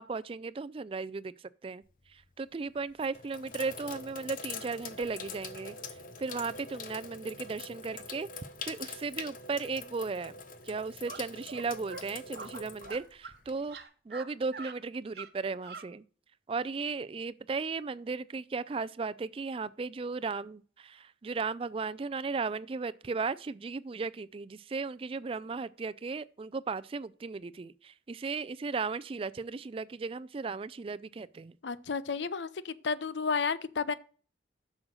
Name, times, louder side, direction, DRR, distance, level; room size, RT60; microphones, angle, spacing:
voice 1, 0.0-1.3 1.6-1.8 2.4-5.8 6.2-8.3 8.7-10.3 10.7-13.8 14.1-16.0 16.5-31.5, right 4 dB, 30° right, 0.3 m, -36 dB
Sink (filling or washing), 1.8-2.3 2.9-13.8, left 4 dB, 50° left, 0.9 m, -44 dB
sound 1, 11.1-11.2 11.5-11.6 11.9-12.0 12.3-13.4 13.6-14.3 14.5-14.8 15.1-15.3 15.6-15.9, right 4 dB, 60° right, 1.0 m, -43 dB
voice 2, 31.6-33.9, left 5 dB, 85° left, 0.6 m, -32 dB
7.6 x 6.4 x 6.2 m
head